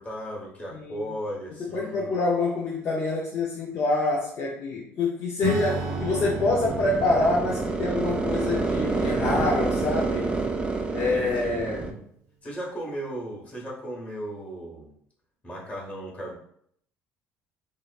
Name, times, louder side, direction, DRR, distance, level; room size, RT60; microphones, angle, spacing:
voice 1, 0.0-2.1 10.9-11.6 12.4-14.9 15.4-16.3, equal, 25° left, -3 dB, 1.2 m, -36 dB
voice 2, 0.7-1.1 1.6-10.3 10.9-12.0, left 2 dB, 50° left, -4 dB, 0.5 m, -26 dB
Acoustic guitar / Strum, 5.4-11.3, right 2 dB, 75° right, 0.5 m, -35 dB
sound 1, 5.7-11.9, right 3 dB, 15° right, 0.4 m, -28 dB
2.8 x 2.0 x 2.3 m, 0.66 s
supercardioid pair, 90°, 6 cm